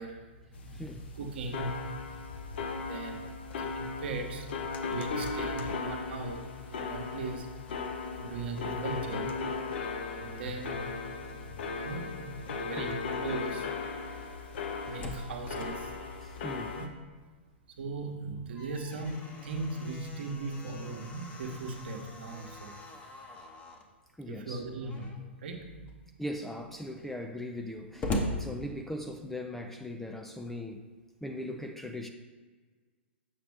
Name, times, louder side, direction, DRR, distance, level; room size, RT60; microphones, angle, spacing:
voice 1, 0.0-7.6 8.1-9.7 10.1-13.7 14.8-16.1 16.7-16.9 17.8-22.8 24.3-25.9, right 3 dB, 60° right, 3 dB, 1.1 m, -39 dB
sound 1, 0.5-16.9, left 4 dB, 60° left, 0.8 m, -37 dB
Slam, 14.6-17.4 17.7-17.8 18.3-23.9 24.8-25.3 25.9-26.0 26.2-29.3, left 1 dB, 20° left, 0.9 m, -41 dB
voice 2, 16.2-16.8 24.2-24.6 26.2-30.8 31.2-32.1, left 1 dB, 5° left, 4 dB, 0.4 m, -39 dB
7.3 x 5.9 x 3.5 m, 1.4 s
figure-of-eight pair, 110°, 6 cm